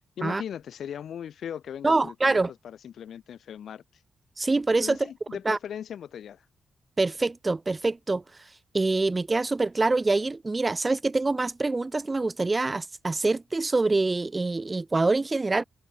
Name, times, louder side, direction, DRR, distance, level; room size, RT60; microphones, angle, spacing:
voice 1, 0.2-3.8 4.8-6.4, left 9 dB, 80° left, 1.1 m, -38 dB
voice 2, 1.8-2.5 4.4-5.0 5.5-5.6 7.0-8.2 8.7-15.6, right 3 dB, 30° right, 0.6 m, -25 dB
open air
cardioid pair, 55°, 0 cm